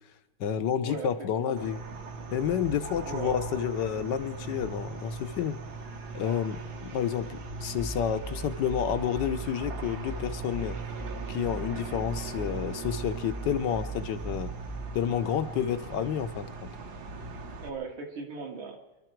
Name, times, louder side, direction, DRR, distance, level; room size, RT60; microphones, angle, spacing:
voice 1, 0.4-1.8 2.3-5.6 6.1-10.8 11.3-14.5 14.9-16.5, left 8 dB, 65° left, 10 dB, 1.3 m, -30 dB
sound 1, 1.6-17.7, right 4 dB, 50° right, 1.6 m, -40 dB
voice 2, 3.0-3.4 17.6-18.8, right 4 dB, 70° right, 1 dB, 2.8 m, -38 dB
sound 2, 7.8-15.1, right 3 dB, ahead, 0.8 m, -39 dB
25.5 x 12.0 x 4.6 m, 1.0 s
omnidirectional pair, 2.4 m